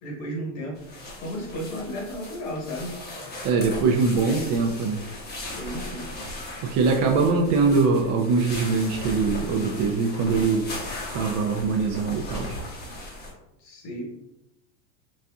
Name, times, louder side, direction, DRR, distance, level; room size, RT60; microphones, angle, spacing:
voice 1, 0.0-2.9 5.4-6.1 13.6-14.0, equal, 45° left, -1 dB, 1.2 m, -34 dB
sound 1, 0.8-13.3, left 1 dB, 25° left, 0.8 m, -37 dB
voice 2, 3.4-5.0 6.6-10.7 11.1-12.5, right 4 dB, 45° right, 2 dB, 0.4 m, -22 dB
4.1 x 2.4 x 2.3 m, 0.90 s
supercardioid pair, 135°, 40 cm